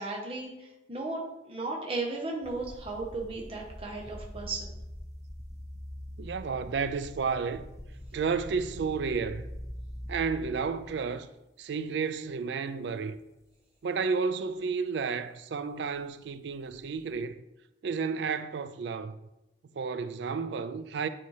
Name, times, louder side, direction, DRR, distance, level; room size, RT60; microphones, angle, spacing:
voice 1, 0.0-4.7, right 3 dB, 30° right, 0.9 m, -35 dB
sound 1, 2.4-11.2 11.9-12.3 12.9-13.0 16.6-17.2, equal, 15° left, 0.4 m, -44 dB
voice 2, 6.2-7.6 8.1-9.5 10.1-11.3 11.6-13.2 13.8-17.4 17.8-19.2 19.7-21.1, right 5 dB, 70° right, 0.4 m, -31 dB
9.4 x 4.2 x 3.2 m
head